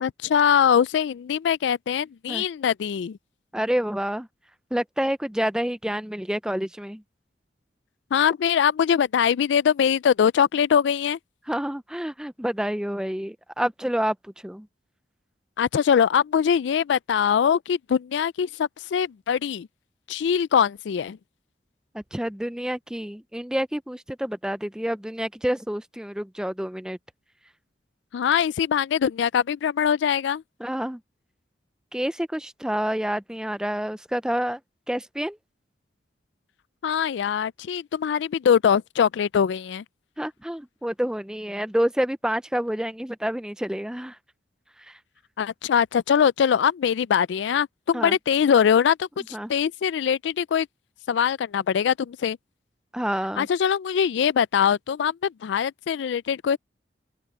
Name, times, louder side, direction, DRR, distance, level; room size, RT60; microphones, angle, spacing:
voice 1, 0.0-3.2 8.1-11.2 15.6-19.7 20.1-21.2 28.1-30.4 36.8-39.8 45.4-50.7 51.1-52.4 53.4-56.6, left 7 dB, 80° left, 0.3 m, -22 dB
voice 2, 3.5-4.3 4.7-7.0 11.5-14.2 14.4-14.7 21.9-27.0 30.6-31.0 31.9-34.6 34.9-35.4 40.2-44.2 44.8-45.0 47.9-48.1 49.3-49.5 52.9-53.5, equal, 5° right, 0.5 m, -28 dB
open air
head